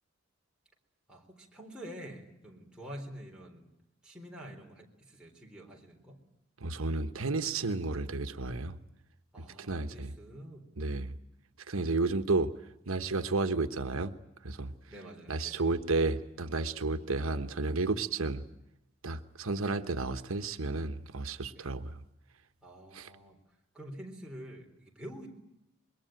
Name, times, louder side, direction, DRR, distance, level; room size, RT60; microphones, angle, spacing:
voice 1, 1.1-3.7 4.0-6.2 9.3-10.6 14.9-15.7 21.5-21.8 22.6-23.4 23.7-25.3, equal, 5° right, 4.0 m, -47 dB
voice 2, 6.6-8.7 9.6-10.1 10.8-11.1 11.7-12.5 12.9-14.1 14.4-14.7 15.3-18.4 19.0-22.0 22.9-23.1, right 3 dB, 85° right, 1.2 m, -32 dB
26.0 x 22.0 x 9.2 m
head